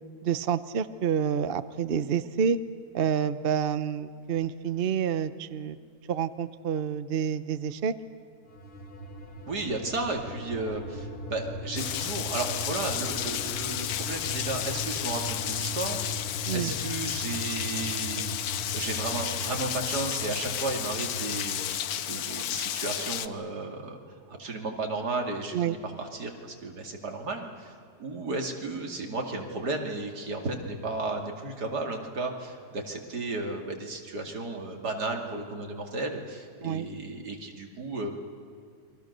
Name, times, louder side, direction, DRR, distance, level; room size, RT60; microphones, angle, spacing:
voice 1, 0.2-2.6 2.9-5.8 6.1-7.9 16.5-16.7 25.5-25.8 36.6-36.9, right 7 dB, 45° right, 13 dB, 0.8 m, -28 dB
sound 1, 8.5-21.7, left 2 dB, 35° left, 2.2 m, -39 dB
voice 2, 9.5-24.0 24.3-26.3 26.6-27.7 28.0-38.1, right 2 dB, 85° right, 2 dB, 3.2 m, -34 dB
Rain, 11.8-23.3, left 10 dB, 70° left, 1.2 m, -32 dB
29.0 x 23.0 x 6.7 m, 2.3 s
omnidirectional pair, 1.7 m